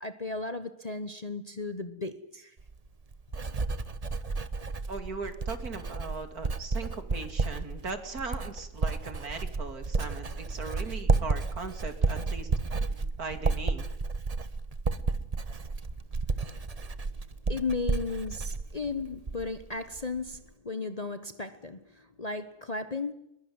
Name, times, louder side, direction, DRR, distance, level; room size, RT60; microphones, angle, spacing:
voice 1, 0.0-2.5 16.6-16.7 17.5-23.1, left 3 dB, 30° left, 1.0 m, -35 dB
Writing, 2.6-19.6 19.9-20.4, right 4 dB, 30° right, 0.9 m, -32 dB
voice 2, 4.9-12.5 13.1-13.9, right 4 dB, 65° right, 3.1 m, -39 dB
21.5 x 21.5 x 9.5 m
omnidirectional pair, 1.7 m